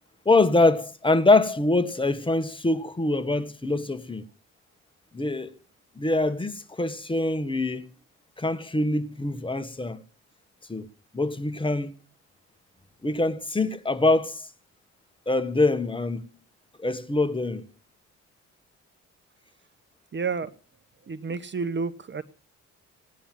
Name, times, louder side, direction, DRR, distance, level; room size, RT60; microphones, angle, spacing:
voice 1, 0.2-4.2 5.1-5.5 6.0-7.9 8.4-10.0 10.7-10.9 11.1-11.9 13.0-14.5 15.3-16.3 16.8-17.7, left 2 dB, 15° left, 1.5 m, -24 dB
voice 2, 20.1-20.5 21.0-22.2, right 4 dB, 35° right, 1.1 m, -30 dB
17.5 x 9.9 x 7.5 m
cardioid pair, 90°, 30 cm